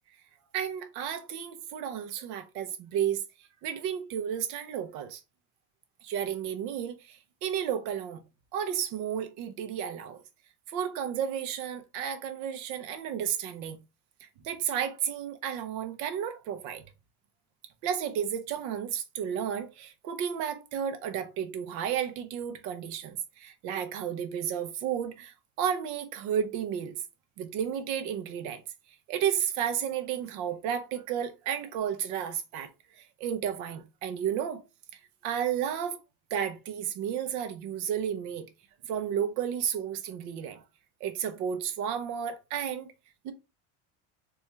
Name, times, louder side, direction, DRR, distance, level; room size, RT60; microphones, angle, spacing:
voice 1, 0.5-3.2 3.6-5.2 6.0-8.2 8.5-10.2 10.7-13.8 14.2-16.8 17.8-27.0 27.4-28.6 29.1-32.7 33.0-34.6 35.2-36.0 36.3-38.4 38.8-40.6 41.0-42.9 43.2-43.3, right 9 dB, 55° right, 0.7 m, -32 dB
4.2 x 2.3 x 3.1 m
cardioid pair, 165°, 37 cm